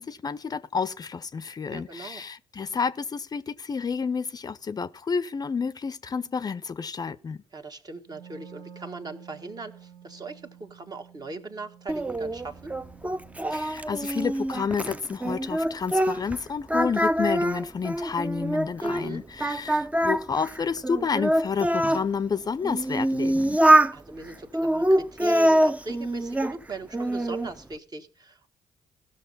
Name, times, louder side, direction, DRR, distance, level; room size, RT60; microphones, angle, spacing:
voice 1, 0.0-7.4 13.5-23.6, left 5 dB, 35° left, 0.5 m, -30 dB
voice 2, 1.7-2.2 7.5-12.7 18.8-19.2 23.9-28.5, right 3 dB, 35° right, 1.5 m, -39 dB
Wind instrument woodwind instrument, 8.0-13.7, right 8 dB, 75° right, 1.5 m, -50 dB
Singing, 11.9-16.4 16.7-19.0 19.4-22.0 22.6-24.0 24.5-26.6 26.9-27.5, right 1 dB, 10° right, 0.6 m, -24 dB
17.0 x 6.4 x 4.0 m
hypercardioid pair, 50°, 11 cm